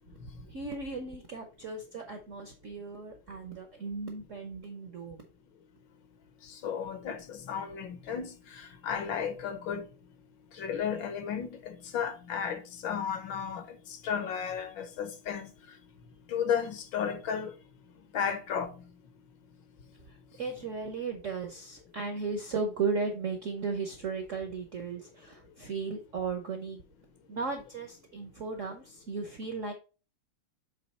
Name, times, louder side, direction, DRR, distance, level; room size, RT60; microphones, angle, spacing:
voice 1, 0.5-5.2 20.1-26.8 27.3-29.7, right 4 dB, 60° right, 0.8 m, -36 dB
voice 2, 6.4-9.9 10.5-15.5 16.3-17.5 18.1-18.7, left 7 dB, 70° left, 1.4 m, -34 dB
7.5 x 3.1 x 4.1 m
omnidirectional pair, 2.3 m